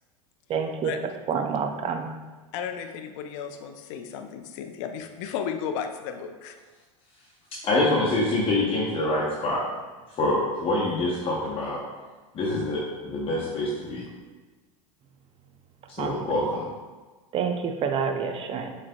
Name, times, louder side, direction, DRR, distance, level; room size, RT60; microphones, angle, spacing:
voice 1, 0.5-0.9 1.3-2.1 16.0-16.1 17.3-18.7, right 6 dB, 35° right, 5 dB, 0.6 m, -28 dB
voice 2, 2.5-6.6, left 7 dB, 60° left, 6 dB, 0.6 m, -34 dB
voice 3, 7.6-9.6 10.2-11.8 12.3-14.1 15.9-16.6, left 2 dB, 35° left, -5 dB, 1.0 m, -25 dB
7.2 x 3.3 x 2.3 m, 1.3 s
hypercardioid pair, 95°, 18 cm